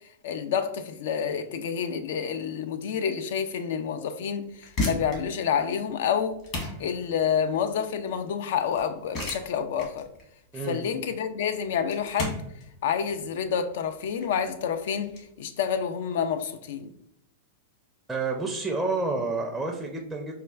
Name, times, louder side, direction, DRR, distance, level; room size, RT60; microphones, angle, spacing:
voice 1, 0.2-6.4 6.8-10.1 10.6-12.4 12.8-16.9, left 7 dB, 65° left, 9 dB, 0.3 m, -28 dB
sound 1, 4.4-15.2, left 2 dB, 45° left, 1.2 m, -36 dB
voice 2, 18.1-20.4, right 3 dB, 10° right, 1 dB, 0.4 m, -29 dB
4.3 x 2.2 x 2.3 m, 0.75 s
hypercardioid pair, 105°, 0 cm